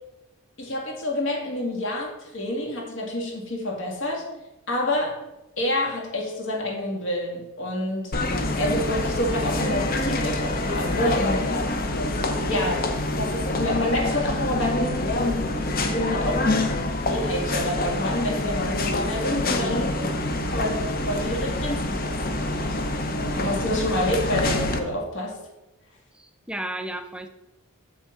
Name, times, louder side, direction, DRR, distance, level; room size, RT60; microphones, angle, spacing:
voice 1, 0.6-4.2 4.7-5.2 5.6-8.2 8.6-11.5 12.5-12.9 13.2-15.5 15.8-16.5 17.1-20.0 20.5-22.9 23.3-25.4, left 1 dB, 60° left, 1 dB, 1.9 m, -28 dB
sound 1, 8.1-24.8, left 2 dB, 40° left, 0.8 m, -26 dB
voice 2, 26.1-27.3, right 1 dB, 5° right, 7 dB, 0.5 m, -34 dB
7.3 x 6.5 x 4.3 m, 0.98 s
head